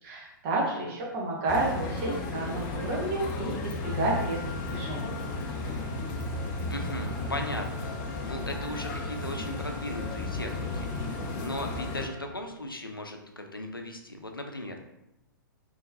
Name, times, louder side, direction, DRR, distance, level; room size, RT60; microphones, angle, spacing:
voice 1, 0.0-5.2, right 2 dB, 35° right, -2 dB, 1.0 m, -31 dB
voice 2, 0.5-0.9 6.7-14.8, left 1 dB, 90° left, 4 dB, 0.5 m, -37 dB
sound 1, 1.5-12.1, left 3 dB, 30° left, 0.4 m, -34 dB
Wind instrument woodwind instrument, 3.8-12.5, equal, 50° left, 1.0 m, -47 dB
3.7 x 3.0 x 2.7 m, 0.89 s
figure-of-eight pair, 110°, 11 cm